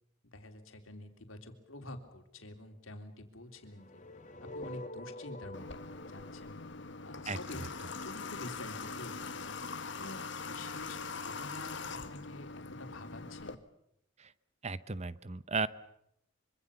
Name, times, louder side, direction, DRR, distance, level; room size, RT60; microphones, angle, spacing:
voice 1, 0.2-4.0 4.4-6.6 7.0-9.6 10.0-13.6, left 1 dB, 80° left, 6 dB, 3.4 m, -48 dB
sound 1, 3.6-7.7, left 1 dB, 40° left, 2.2 m, -47 dB
Water / Water tap faucet, 5.5-13.5, left 4 dB, 60° left, 1.5 m, -42 dB
voice 2, 14.6-15.7, right 4 dB, 35° right, 16 dB, 0.9 m, -34 dB
25.0 x 25.0 x 7.1 m, 0.76 s
head